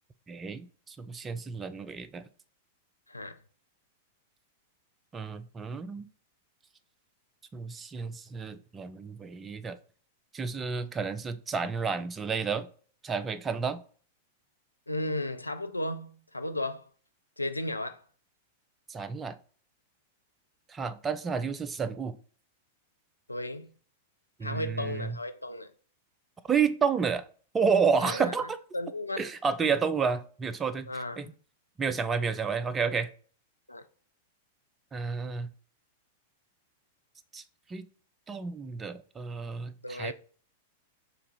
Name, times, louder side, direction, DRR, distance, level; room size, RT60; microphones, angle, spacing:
voice 1, 0.3-2.2 5.1-6.1 7.5-9.8 10.3-12.7 13.0-13.8 18.9-19.4 20.7-22.1 24.4-25.2 26.5-27.2 27.5-28.6 29.2-30.9 31.2-31.3 31.8-33.1 34.9-35.5 37.3-37.4 37.7-37.9 38.3-40.1, right 5 dB, 20° right, 0.4 m, -30 dB
voice 2, 3.1-3.4 14.9-16.9 17.4-18.0 23.3-23.7 24.4-25.7 28.0-28.3 28.7-29.3 29.6-29.7 30.9-31.2 33.7-33.8 39.8-40.1, left 1 dB, 90° left, 0.4 m, -34 dB
3.4 x 2.9 x 4.7 m
figure-of-eight pair, 95°, 0 cm